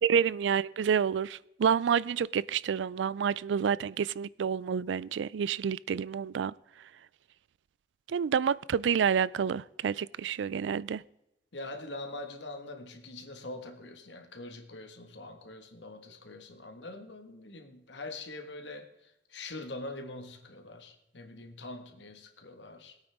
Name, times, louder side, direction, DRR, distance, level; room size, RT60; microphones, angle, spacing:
voice 1, 0.0-6.5 8.1-11.0, right 7 dB, 85° right, 21 dB, 0.4 m, -28 dB
voice 2, 11.5-23.0, left 2 dB, 80° left, 5 dB, 1.7 m, -43 dB
20.5 x 8.9 x 3.6 m, 0.88 s
head